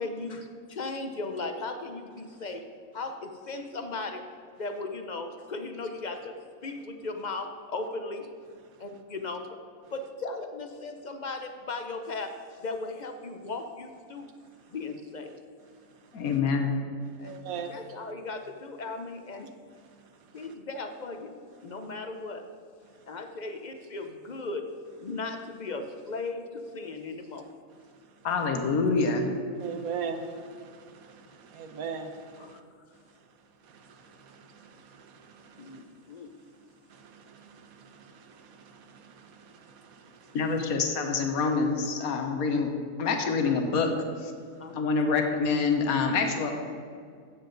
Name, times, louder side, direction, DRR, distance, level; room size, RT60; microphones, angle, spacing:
voice 1, 0.0-4.3 4.6-8.3 8.8-9.6 9.9-14.3 14.7-15.4 17.2-19.5 20.3-21.4 21.6-22.4 23.1-24.7 25.0-27.5 32.4-32.6 35.6-36.3 40.5-40.6 44.6-44.9, left 3 dB, 45° left, 6 dB, 0.6 m, -37 dB
voice 2, 16.1-16.7 28.2-29.3 40.3-42.7 43.0-43.9 44.2-44.3 44.7-46.5, left 4 dB, 85° left, 4 dB, 1.4 m, -26 dB
voice 3, 17.2-17.7 29.6-32.6 33.7-35.8 36.9-40.4, right 6 dB, 80° right, 7 dB, 1.3 m, -41 dB
15.0 x 7.3 x 3.9 m, 2.1 s
omnidirectional pair, 1.5 m